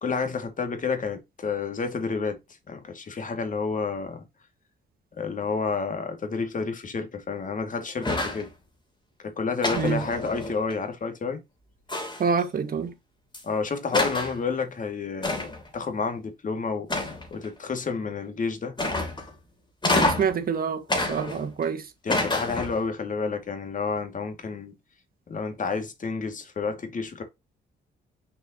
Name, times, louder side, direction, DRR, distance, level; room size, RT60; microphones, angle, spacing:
voice 1, 0.0-2.4 2.7-4.2 5.2-8.5 9.2-11.4 13.4-18.8 22.0-24.7 25.3-27.2, left 4 dB, 40° left, 2.2 m, -30 dB
sound 1, 8.0-8.5 9.6-10.7 11.9-12.4 13.3-13.4 13.9-14.4 15.2-15.7 16.9-17.5 18.8-19.3 19.8-20.4 20.9-21.7 22.1-22.8, left 2 dB, 25° left, 3.1 m, -27 dB
voice 2, 12.2-12.9 19.9-21.9, right 6 dB, 45° right, 1.7 m, -27 dB
6.5 x 5.4 x 2.9 m
cardioid pair, 90°, 20 cm